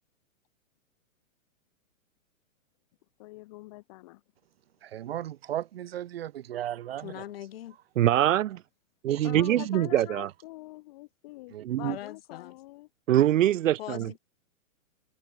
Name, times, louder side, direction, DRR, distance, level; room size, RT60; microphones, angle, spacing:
voice 1, 3.2-4.2 9.2-12.9, left 20 dB, 25° left, 1.6 m, -44 dB
voice 2, 4.8-7.2 9.1-9.7 11.5-11.6, right 12 dB, 45° right, 1.7 m, -36 dB
voice 3, 7.0-7.8 11.8-12.6 13.8-14.2, left 12 dB, 45° left, 6.4 m, -41 dB
voice 4, 8.0-8.6 9.0-10.3 11.6-12.0 13.1-14.2, right 12 dB, 70° right, 0.6 m, -24 dB
hypercardioid pair, 175°, 41 cm